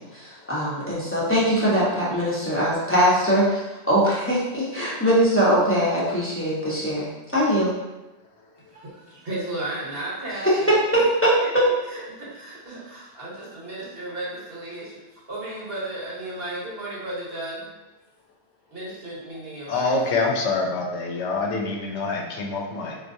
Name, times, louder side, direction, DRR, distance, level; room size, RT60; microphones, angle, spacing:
voice 1, 0.0-3.6 3.9-7.7 10.4-10.5 10.9-11.6, equal, 15° left, -8 dB, 0.7 m, -21 dB
voice 2, 8.7-10.7 11.4-11.5 11.9-17.7 18.7-20.3, right 1 dB, 60° right, -5 dB, 1.2 m, -34 dB
voice 3, 19.7-23.0, left 3 dB, 80° left, 1 dB, 0.9 m, -25 dB
4.4 x 2.4 x 2.6 m, 1.0 s
omnidirectional pair, 1.2 m